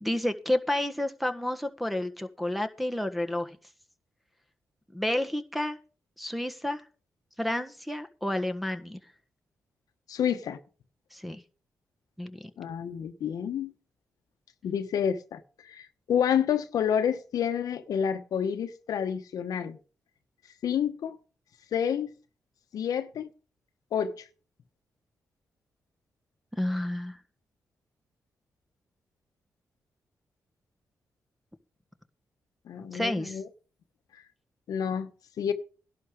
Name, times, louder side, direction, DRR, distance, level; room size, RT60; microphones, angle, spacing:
voice 1, 0.0-3.6 4.9-5.8 6.2-6.8 7.4-9.0 11.1-11.4 12.2-12.5 26.5-27.2 32.8-33.4, left 1 dB, ahead, 1.5 m, -30 dB
voice 2, 10.1-10.6 12.6-13.7 14.6-19.8 20.6-21.2 21.7-22.1 22.7-23.3 23.9-24.1 32.7-33.5 34.7-35.1 35.4-35.5, left 8 dB, 80° left, 1.1 m, -29 dB
11.5 x 10.5 x 5.0 m
cardioid pair, 70°, 6 cm